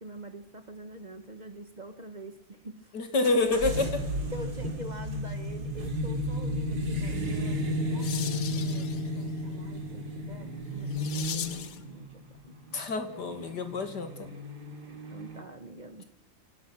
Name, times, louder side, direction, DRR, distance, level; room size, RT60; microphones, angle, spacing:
voice 1, 0.0-2.8 3.3-3.6 4.3-12.5 14.9-16.0, equal, 25° right, 9 dB, 1.3 m, -45 dB
voice 2, 2.9-3.9 12.7-14.3, left 3 dB, 65° left, 7 dB, 2.7 m, -28 dB
sound 1, 3.2-15.4, left 1 dB, 60° right, 3.4 m, -33 dB
sound 2, 7.5-11.9, left 8 dB, 85° left, 2.0 m, -41 dB
27.0 x 17.0 x 6.3 m, 0.76 s
omnidirectional pair, 2.0 m